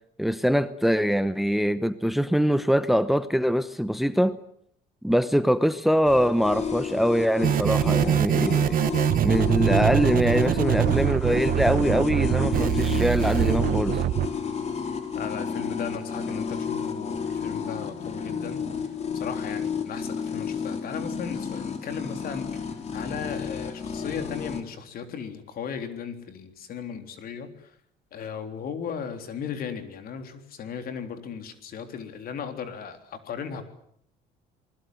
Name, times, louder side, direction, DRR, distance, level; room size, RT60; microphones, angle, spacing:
voice 1, 0.2-4.4 5.0-8.8 9.2-14.0, equal, ahead, 13 dB, 0.9 m, -23 dB
sound 1, 6.0-24.6, left 6 dB, 40° left, 3.4 m, -31 dB
sound 2, 7.4-14.3, right 11 dB, 55° right, 1.1 m, -24 dB
voice 2, 15.2-18.6 19.1-27.7 28.1-33.6, left 7 dB, 60° left, 7 dB, 3.6 m, -36 dB
28.0 x 20.0 x 7.9 m, 0.68 s
cardioid pair, 110°, 17 cm